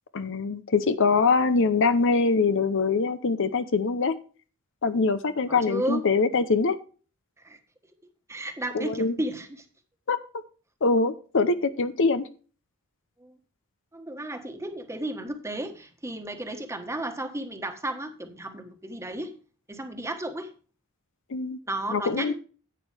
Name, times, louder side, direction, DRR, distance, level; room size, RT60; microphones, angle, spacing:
voice 1, 0.1-4.2 4.8-6.8 8.7-9.2 10.1-10.2 10.8-12.3 21.3-21.6 21.9-22.3, left 4 dB, 60° left, 12 dB, 0.7 m, -23 dB
voice 2, 5.5-6.0 7.4-7.6 8.3-9.6 13.2-13.4 13.9-19.3 19.7-20.5 21.7-22.3, right 1 dB, 15° right, 5 dB, 1.4 m, -33 dB
10.5 x 9.0 x 3.4 m, 0.38 s
head